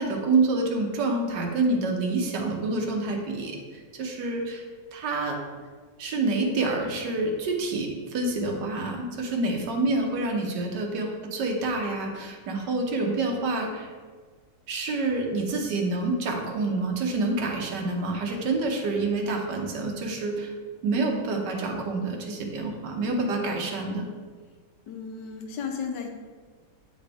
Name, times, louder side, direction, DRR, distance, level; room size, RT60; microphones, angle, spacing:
voice 1, 0.0-3.6 3.9-5.4 6.0-13.9 14.7-20.5 20.8-24.1, right 3 dB, 80° right, 1 dB, 1.5 m, -27 dB
voice 2, 24.9-26.1, left 6 dB, 80° left, 4 dB, 1.4 m, -34 dB
9.0 x 4.0 x 3.4 m, 1.5 s
omnidirectional pair, 1.9 m